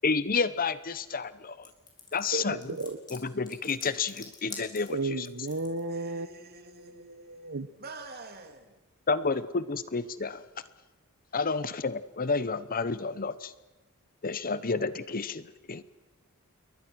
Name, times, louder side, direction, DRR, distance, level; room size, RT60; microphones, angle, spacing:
voice 1, 0.0-1.7 2.1-2.6 3.1-5.3 9.1-10.4 11.3-13.5 14.2-15.8, left 4 dB, 40° left, 15 dB, 0.9 m, -30 dB
sound 1, 1.6-5.8, left 4 dB, 20° left, 4.5 m, -46 dB
voice 2, 2.3-3.0 4.9-6.3 6.7-7.7, right 2 dB, 60° right, 11 dB, 1.1 m, -34 dB
voice 3, 5.9-8.7, right 3 dB, 45° right, 6 dB, 3.0 m, -47 dB
29.0 x 22.5 x 6.3 m, 1.1 s
head